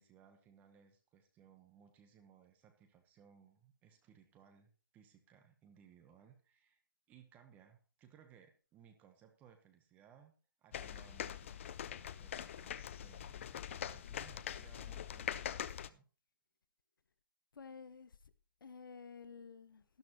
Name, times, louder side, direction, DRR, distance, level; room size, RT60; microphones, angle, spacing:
voice 1, 0.0-6.8 7.1-10.3 10.6-16.1, right 8 dB, 15° right, 1.1 m, -63 dB
sound 1, 10.7-15.9, left 9 dB, 35° left, 0.5 m, -43 dB
voice 2, 17.5-18.3 18.6-19.8, left 5 dB, 65° left, 0.9 m, -52 dB
12.5 x 12.0 x 3.0 m
hypercardioid pair, 155°, 12 cm